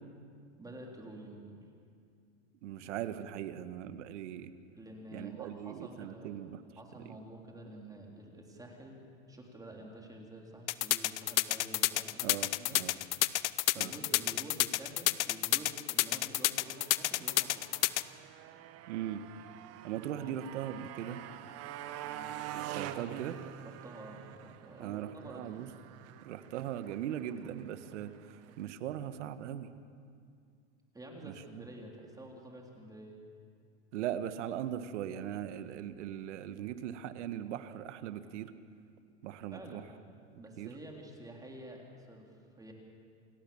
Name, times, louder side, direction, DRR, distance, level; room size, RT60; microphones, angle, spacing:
voice 1, 0.6-1.6 4.8-6.3 6.8-9.0 9.3-12.3 12.6-12.8 13.7-17.7 20.2-20.4 22.0-22.4 23.6-25.6 30.9-33.2 39.5-39.9 40.4-42.7, right 1 dB, 10° right, 0 dB, 3.7 m, -49 dB
voice 2, 2.6-4.5 5.1-6.6 12.2-12.9 13.8-13.9 18.9-19.2 19.8-21.2 22.5-23.4 24.8-25.7 26.2-29.7 31.2-31.6 33.9-38.5 39.2-39.8 40.3-40.7, right 10 dB, 75° right, 11 dB, 1.5 m, -39 dB
sound 1, 10.7-18.0, left 18 dB, 70° left, 0.9 m, -29 dB
Motorcycle, 16.6-28.7, right 11 dB, 45° right, 1.3 m, -46 dB
28.5 x 18.0 x 7.2 m, 2.3 s
supercardioid pair, 120°, 36 cm